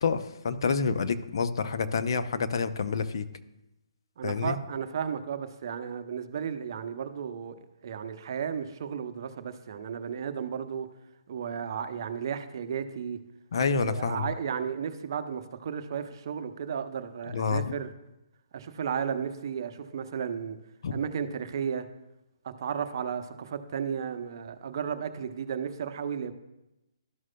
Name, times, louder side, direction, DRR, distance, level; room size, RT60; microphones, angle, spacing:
voice 1, 0.0-3.2 4.2-4.6 13.5-14.3 17.3-17.7 20.8-20.9, left 5 dB, 60° left, 10 dB, 0.6 m, -28 dB
voice 2, 4.2-10.9 11.3-13.2 13.8-17.9 18.5-20.6 20.9-21.9 22.4-26.3, right 7 dB, 50° right, 9 dB, 0.7 m, -34 dB
12.5 x 6.1 x 2.2 m, 0.93 s
hypercardioid pair, 140°, 3 cm